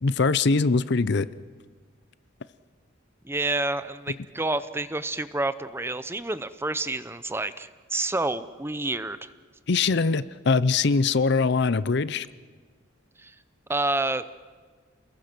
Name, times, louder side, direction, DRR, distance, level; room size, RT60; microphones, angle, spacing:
voice 1, 0.0-1.3 9.7-12.3, left 4 dB, 60° left, 16 dB, 0.6 m, -22 dB
voice 2, 3.2-9.3 13.2-13.3 13.7-14.3, right 2 dB, 10° right, 13 dB, 0.7 m, -29 dB
29.0 x 21.0 x 6.1 m, 1.5 s
head